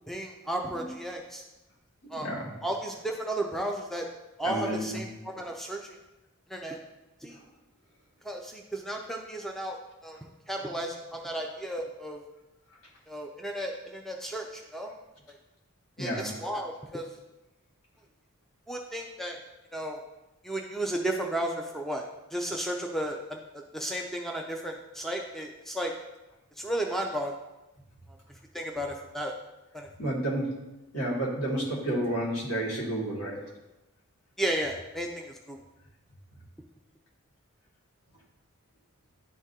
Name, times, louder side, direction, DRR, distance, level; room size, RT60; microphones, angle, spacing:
voice 1, 0.1-1.4 2.1-2.3 2.6-4.1 4.4-6.0 6.5-6.8 7.2-7.4 8.2-9.8 10.0-10.2 10.5-12.2 13.1-14.9 16.0-17.1 18.7-19.4 19.7-20.0 20.4-23.4 23.7-25.9 26.6-27.3 28.5-29.3 29.7-29.9 34.4-35.6, right 1 dB, ahead, 1 dB, 0.4 m, -33 dB
voice 2, 2.2-2.5 4.4-5.0 16.0-16.3 30.0-30.5 30.9-33.4, right 1 dB, 70° left, -5 dB, 2.0 m, -30 dB
11.0 x 3.6 x 2.7 m, 1.0 s
head